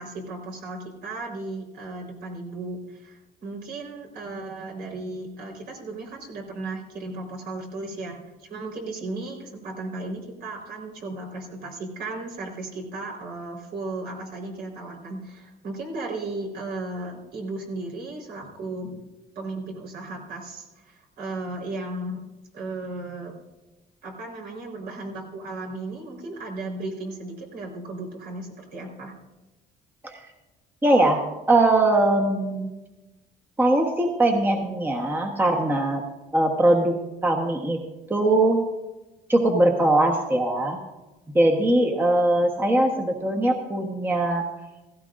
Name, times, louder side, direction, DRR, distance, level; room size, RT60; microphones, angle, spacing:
voice 1, 0.0-18.9 19.3-22.2 22.5-23.3 24.0-29.1, right 2 dB, 70° right, -1 dB, 4.2 m, -35 dB
voice 2, 30.8-32.7 33.6-36.0 36.3-37.8 38.1-38.6 39.3-40.8 41.3-44.4, right 1 dB, 10° right, 1 dB, 1.2 m, -21 dB
16.5 x 16.0 x 2.6 m, 1.1 s
cardioid pair, 135°, 17 cm